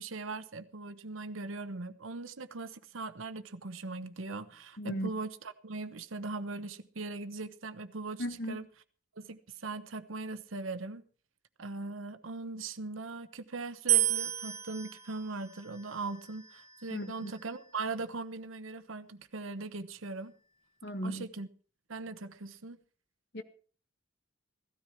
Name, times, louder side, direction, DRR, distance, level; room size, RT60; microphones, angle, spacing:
voice 1, 0.0-8.6 9.2-11.0 11.6-20.3 21.0-21.5 21.9-22.8, right 3 dB, 90° right, 1.0 m, -40 dB
voice 2, 4.8-5.1 8.2-8.6 16.9-17.3 20.8-21.3 23.3-23.4, equal, 55° left, 1.5 m, -36 dB
sound 1, 13.9-17.1, right 14 dB, 35° right, 1.3 m, -32 dB
16.5 x 13.0 x 4.5 m
head